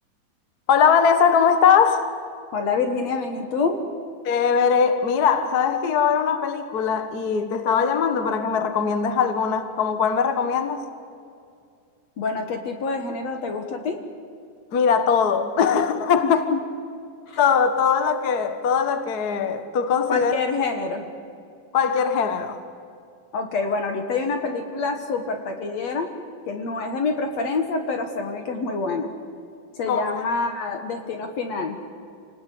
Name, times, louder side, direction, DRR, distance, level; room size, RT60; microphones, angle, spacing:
voice 1, 0.7-2.1 4.2-10.8 14.7-16.4 17.4-20.3 21.7-22.6 29.9-30.2, left 6 dB, 80° left, 0.8 m, -21 dB
voice 2, 2.5-3.8 12.2-14.0 16.2-16.6 17.3-17.4 20.1-21.0 23.3-26.1 26.5-29.1 29.8-31.8, left 4 dB, 55° left, 2.2 m, -26 dB
28.0 x 19.0 x 8.5 m
omnidirectional pair, 4.2 m